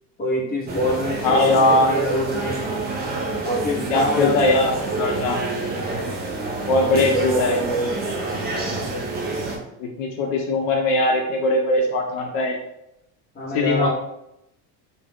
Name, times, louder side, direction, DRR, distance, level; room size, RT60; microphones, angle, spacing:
voice 1, 0.2-2.6 3.4-4.4 6.7-7.9 13.3-13.9, equal, 20° left, -4 dB, 0.8 m, -25 dB
sound 1, 0.7-9.6, right 2 dB, 25° right, 0.3 m, -28 dB
voice 2, 1.2-1.9 3.9-5.4 6.7-7.6 9.8-12.6 13.5-13.9, left 2 dB, 65° left, 1 dB, 0.5 m, -20 dB
2.3 x 2.0 x 3.3 m, 0.85 s
supercardioid pair, 110°, 47 cm